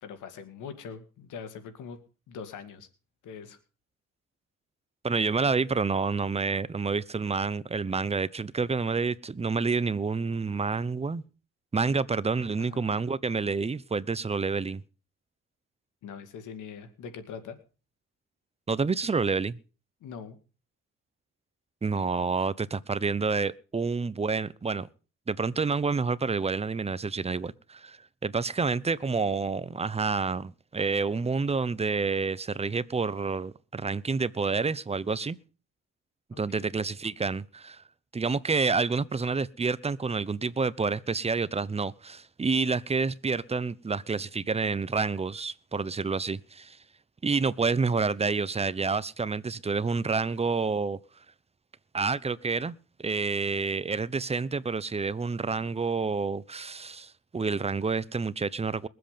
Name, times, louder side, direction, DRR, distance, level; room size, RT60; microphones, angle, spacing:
voice 1, 0.0-2.0 2.3-2.9 3.2-3.6 12.6-12.9 16.0-17.6 20.0-20.4 36.3-36.7, left 6 dB, 80° left, 2.2 m, -42 dB
voice 2, 5.0-11.2 11.7-14.8 18.7-19.6 21.8-24.9 25.3-35.4 36.4-37.8 38.1-46.8 47.2-51.0 51.9-58.9, right 4 dB, 20° right, 0.8 m, -28 dB
21.5 x 7.9 x 5.1 m
cardioid pair, 90°, 30 cm